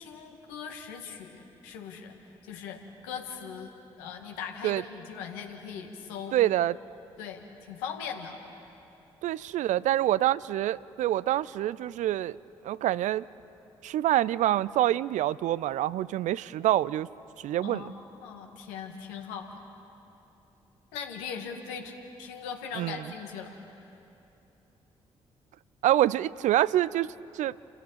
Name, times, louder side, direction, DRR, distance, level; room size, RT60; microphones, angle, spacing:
voice 1, 0.0-2.1 2.4-6.4 7.2-8.4 17.6-19.6 20.9-21.9 22.2-23.6, left 6 dB, 75° left, 3 dB, 1.8 m, -40 dB
voice 2, 6.3-6.8 9.2-12.4 12.6-13.2 13.8-17.1 17.4-17.9 22.8-23.0 25.8-27.1 27.3-27.5, right 13 dB, 60° right, 20 dB, 0.4 m, -26 dB
29.5 x 15.5 x 5.7 m, 2.9 s
figure-of-eight pair, 40°, 14 cm